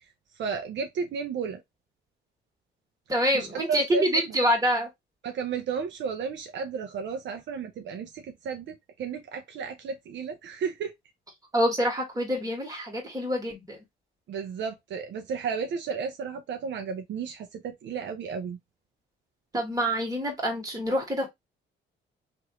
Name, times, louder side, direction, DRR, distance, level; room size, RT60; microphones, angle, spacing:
voice 1, 0.4-1.6 3.3-4.2 5.2-10.9 14.3-18.6, right 6 dB, 65° right, 0.6 m, -33 dB
voice 2, 3.1-4.9 11.5-13.8 19.5-21.3, equal, 20° right, 1.7 m, -26 dB
3.0 x 2.6 x 2.9 m
cardioid pair, 90°, 20 cm